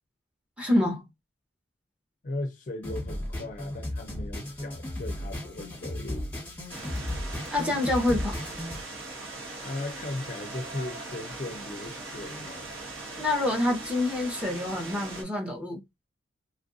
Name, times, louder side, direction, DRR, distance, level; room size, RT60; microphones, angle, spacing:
voice 1, 0.6-1.0 7.5-8.4 13.2-15.8, left 1 dB, 5° right, 0.8 m, -27 dB
voice 2, 2.2-6.3 9.6-12.7, left 2 dB, 40° left, 0.5 m, -37 dB
sound 1, 2.8-8.8, left 1 dB, 10° left, 1.3 m, -35 dB
sound 2, 6.7-15.2, right 2 dB, 80° right, 1.7 m, -40 dB
3.1 x 2.5 x 2.6 m
head